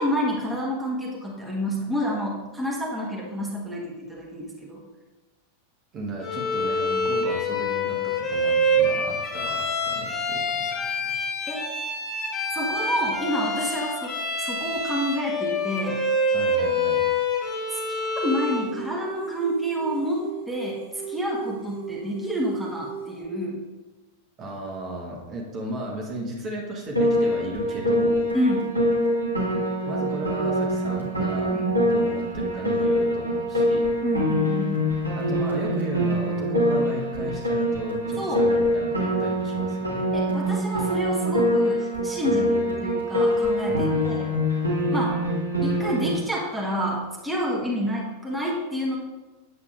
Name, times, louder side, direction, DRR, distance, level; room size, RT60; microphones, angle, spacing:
voice 1, 0.0-4.8 11.5-11.7 12.5-16.0 17.7-17.8 18.2-23.6 28.3-28.7 31.5-31.7 34.0-34.9 38.2-38.5 40.1-44.3 44.9-45.3 45.6-49.0, equal, ahead, -5 dB, 1.3 m, -29 dB
voice 2, 5.9-11.1 16.3-17.0 24.4-28.2 29.8-31.6 31.8-33.9 35.1-40.0 42.3-42.9 43.7-44.3, right 1 dB, 30° right, -1 dB, 1.3 m, -35 dB
Bowed string instrument, 6.2-18.7, left 1 dB, 30° left, 1.6 m, -26 dB
sound 1, 18.2-23.3, right 8 dB, 50° right, 1.3 m, -38 dB
Piano, 27.0-46.1, equal, 85° right, 1.5 m, -24 dB
8.4 x 7.4 x 2.4 m, 1.1 s
figure-of-eight pair, 90°, 0 cm